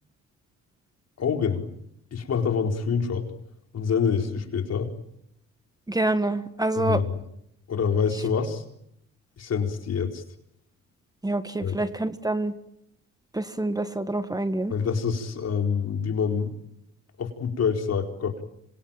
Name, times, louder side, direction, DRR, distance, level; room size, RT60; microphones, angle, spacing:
voice 1, 1.2-1.7 2.1-3.3 3.7-4.9 6.7-7.1 7.7-8.6 9.4-10.2 11.6-11.8 14.7-16.5 17.2-18.4, left 6 dB, 55° left, 4 dB, 4.4 m, -26 dB
voice 2, 5.9-7.0 11.2-12.5 13.3-14.7, right 2 dB, 10° right, 10 dB, 1.6 m, -26 dB
27.0 x 23.5 x 9.1 m, 0.77 s
cardioid pair, 90°, 30 cm